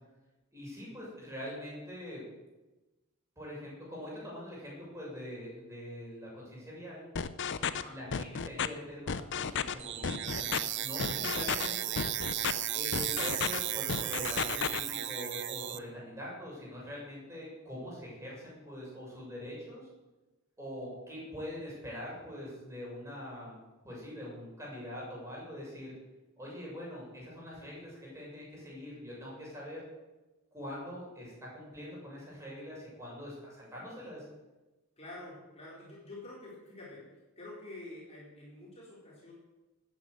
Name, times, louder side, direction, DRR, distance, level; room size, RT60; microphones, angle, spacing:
voice 1, 0.5-2.2 3.3-7.0 7.9-12.0 12.7-19.9 20.6-23.6 23.8-25.9 26.4-29.8 30.5-34.3, equal, 15° right, -5 dB, 6.8 m, -43 dB
sound 1, 7.1-7.8 8.1-8.7 9.1-9.7 10.0-10.6 11.0-11.7 12.0-12.5 12.9-13.6 13.9-14.8, left 6 dB, 55° left, 0.7 m, -32 dB
voice 2, 7.6-8.0 11.3-11.6 35.0-37.1 37.4-39.3, left 2 dB, 30° left, -5 dB, 4.2 m, -47 dB
sound 2, 9.8-15.8, right 12 dB, 55° right, 0.7 m, -35 dB
13.0 x 9.7 x 7.9 m, 1.1 s
head